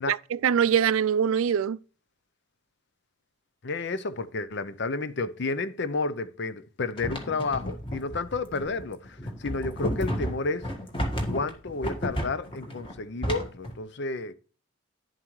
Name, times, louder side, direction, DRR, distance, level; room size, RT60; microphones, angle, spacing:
voice 1, 0.0-1.8, right 8 dB, 70° right, 0.3 m, -23 dB
voice 2, 3.6-10.7 11.3-14.3, left 3 dB, 55° left, 0.6 m, -31 dB
sound 1, 7.0-13.7, equal, 25° left, 1.7 m, -32 dB
10.0 x 7.4 x 3.1 m
head